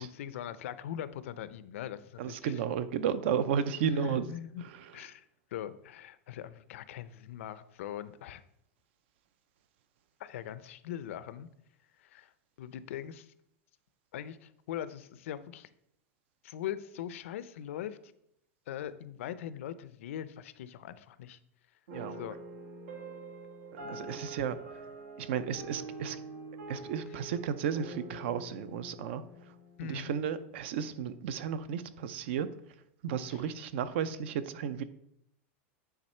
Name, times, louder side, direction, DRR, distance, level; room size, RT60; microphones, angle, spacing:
voice 1, 0.0-2.5 3.9-4.6 4.9-5.2 5.5-8.4 10.2-11.5 12.0-12.3 12.6-13.3 14.1-15.7 16.4-18.0 18.7-21.4 22.2-22.4 29.8-30.1 33.3-33.4, left 10 dB, 70° left, 15 dB, 0.5 m, -41 dB
voice 2, 2.2-4.3 4.6-4.9 21.9-22.2 23.7-24.6 25.2-26.2 26.7-29.2 29.8-32.5 33.0-34.8, right 8 dB, 55° right, 14 dB, 0.5 m, -33 dB
sound 1, 21.9-30.4, right 3 dB, 85° right, 1.8 m, -45 dB
9.2 x 3.6 x 4.3 m, 0.75 s
supercardioid pair, 175°, 7 cm